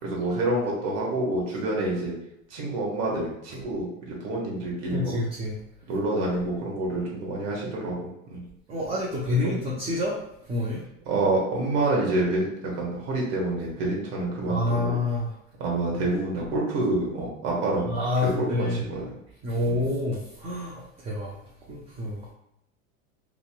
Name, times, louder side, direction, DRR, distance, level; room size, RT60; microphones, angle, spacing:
voice 1, 0.0-2.1 2.5-5.1 5.9-8.4 9.4-9.6 11.1-14.9 15.6-17.9 18.2-19.1 19.6-19.9, right 2 dB, 55° right, -3 dB, 1.2 m, -27 dB
voice 2, 4.9-5.5 8.7-10.2 10.5-10.8 14.5-15.3 17.9-18.8 19.4-21.4 21.7-22.3, left 2 dB, 15° right, -3 dB, 0.3 m, -28 dB
2.9 x 2.8 x 2.2 m, 0.81 s
hypercardioid pair, 105°, 39 cm